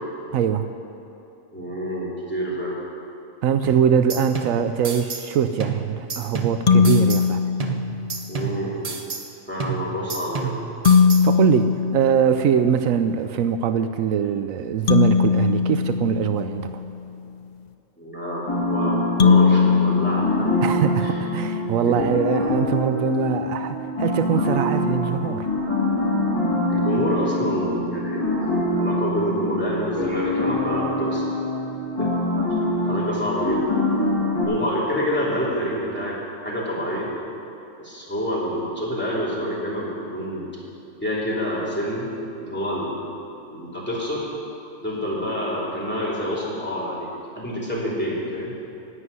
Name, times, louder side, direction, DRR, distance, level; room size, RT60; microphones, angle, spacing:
voice 1, 0.3-0.7 3.4-7.4 11.2-16.8 20.6-25.5, right 8 dB, 80° right, 9 dB, 1.0 m, -22 dB
voice 2, 1.5-2.7 8.3-8.8 9.5-10.6 18.0-20.5 21.9-22.0 26.7-31.2 32.0-32.1 32.8-33.7 34.4-36.2 36.4-37.1 37.8-40.5 41.0-42.1 42.4-43.0 43.4-44.3 44.8-47.1 47.3-48.5, equal, 10° left, -7 dB, 3.1 m, -27 dB
sound 1, 3.6-5.3 5.6-7.3 7.6-9.3 9.6-11.3, right 5 dB, 35° right, 0.7 m, -31 dB
sound 2, 6.7-8.3 10.8-12.9 14.9-17.0 19.2-21.2, left 5 dB, 80° left, 0.3 m, -20 dB
sound 3, 18.5-34.4, left 1 dB, 25° left, 2.5 m, -25 dB
11.5 x 8.1 x 9.5 m, 2.9 s
omnidirectional pair, 1.4 m